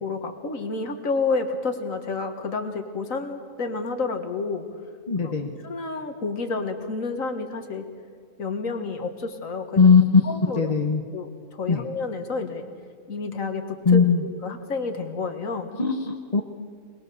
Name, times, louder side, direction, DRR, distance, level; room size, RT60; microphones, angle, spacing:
voice 1, 0.0-4.7 5.2-5.4 5.6-7.9 8.4-9.9 10.2-10.7 11.1-12.7 13.1-15.7, left 4 dB, 75° left, 6 dB, 2.0 m, -30 dB
voice 2, 5.1-5.5 9.8-10.2 10.6-11.0 11.7-11.8 13.9-14.2 15.8-16.4, left 5 dB, 30° left, 3 dB, 0.9 m, -18 dB
22.0 x 21.5 x 6.9 m, 2.1 s
omnidirectional pair, 1.4 m